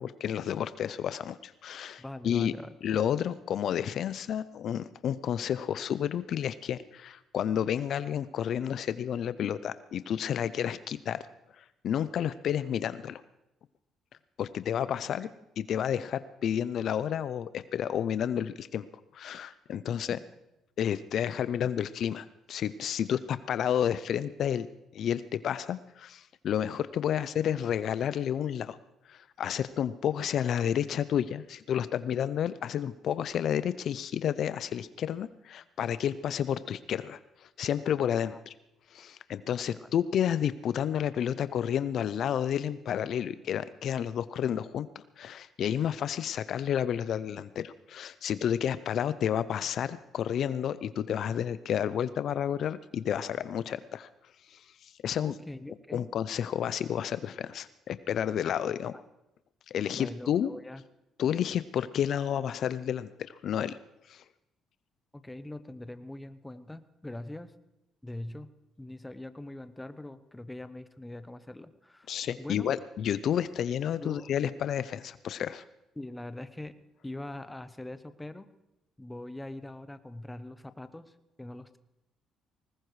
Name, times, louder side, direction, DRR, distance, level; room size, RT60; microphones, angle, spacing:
voice 1, 0.0-2.5 2.8-11.2 11.6-13.2 14.4-15.3 15.6-18.9 19.1-20.2 20.8-24.7 24.9-28.8 29.1-38.5 38.9-54.1 54.5-55.3 55.9-58.9 59.7-60.5 61.2-63.8 64.1-64.2 72.1-75.6, left 9 dB, 60° left, 15 dB, 0.5 m, -31 dB
voice 2, 2.0-2.7 19.9-20.2 38.3-38.4 39.6-39.9 55.2-56.1 58.9-59.0 59.9-60.8 65.1-67.5 68.0-68.5 68.8-72.7 74.0-74.3 76.0-76.7 77.0-78.5 79.0-81.8, left 1 dB, 10° left, 11 dB, 0.8 m, -42 dB
20.0 x 19.0 x 3.2 m, 0.89 s
cardioid pair, 100°, 0 cm